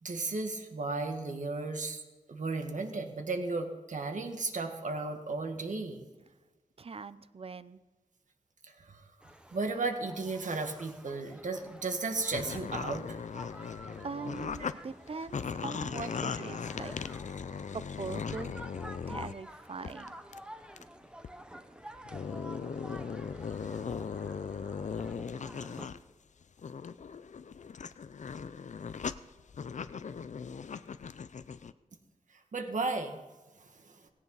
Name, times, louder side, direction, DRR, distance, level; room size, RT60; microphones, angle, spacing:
voice 1, 0.0-2.0 2.3-6.0 8.7-9.0 9.5-13.2 32.3-33.2 33.6-34.1, right 3 dB, 65° right, 5 dB, 1.9 m, -35 dB
voice 2, 6.8-7.8 13.5-13.8 14.0-16.9 17.7-18.5 19.1-20.1, right 4 dB, 45° right, 14 dB, 0.6 m, -42 dB
sound 1, 9.2-25.9, equal, 5° right, 1.0 m, -50 dB
sound 2, 12.3-14.7 15.1-19.4 19.8-20.1 20.3-20.4 20.8-20.9 21.2-21.3 21.9-26.0 26.4-31.7, left 6 dB, 60° left, 0.5 m, -38 dB
18.0 x 17.0 x 4.1 m, 1.2 s
wide cardioid pair, 115°, 14 cm